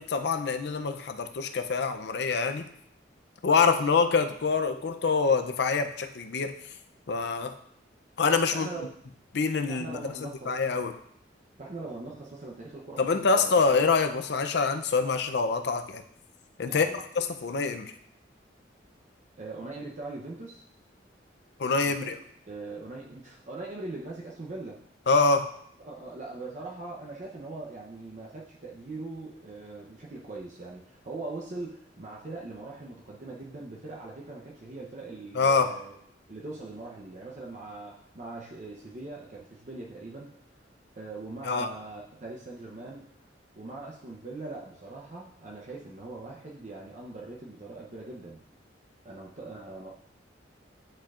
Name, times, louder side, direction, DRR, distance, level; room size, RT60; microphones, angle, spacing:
voice 1, 0.0-2.7 3.4-6.5 7.1-7.5 8.2-8.7 9.3-10.9 13.0-16.0 16.6-17.9 21.6-22.1 25.1-25.5 35.3-35.7 41.4-41.7, left 4 dB, 60° left, 7 dB, 0.5 m, -25 dB
voice 2, 8.5-8.9 9.7-10.6 11.6-13.8 16.7-17.0 19.4-20.6 21.8-22.2 22.5-24.8 25.8-36.0 36.3-40.3 41.0-43.1 43.6-48.4 49.0-49.9, right 2 dB, 40° right, -2 dB, 0.7 m, -41 dB
10.0 x 4.3 x 2.4 m, 0.69 s
head